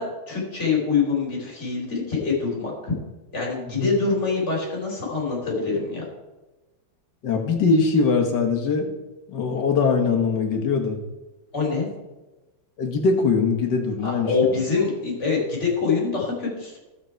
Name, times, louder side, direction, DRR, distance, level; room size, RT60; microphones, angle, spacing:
voice 1, 0.0-2.9 3.3-6.1 11.5-11.9 14.0-16.8, left 4 dB, 30° left, -3 dB, 3.6 m, -25 dB
voice 2, 7.2-8.9 9.3-11.0 12.8-14.5, left 4 dB, 60° left, 3 dB, 1.9 m, -22 dB
13.0 x 7.6 x 4.5 m, 1.1 s
omnidirectional pair, 2.3 m